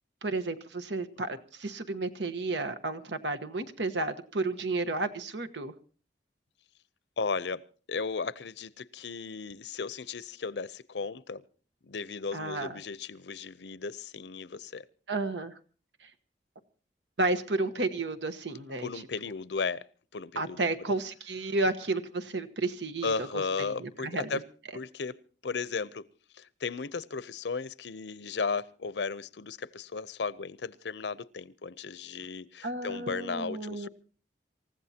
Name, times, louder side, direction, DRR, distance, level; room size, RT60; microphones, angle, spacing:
voice 1, 0.2-5.7 12.3-12.8 15.1-15.5 17.2-19.0 20.3-24.4 32.6-33.9, right 2 dB, 90° right, 1.2 m, -32 dB
voice 2, 7.2-7.6 7.9-11.4 11.9-14.8 18.8-19.8 20.1-20.7 23.0-24.4 24.7-25.1 25.4-26.0 26.4-33.9, left 4 dB, 80° left, 0.7 m, -35 dB
27.5 x 15.0 x 2.8 m
head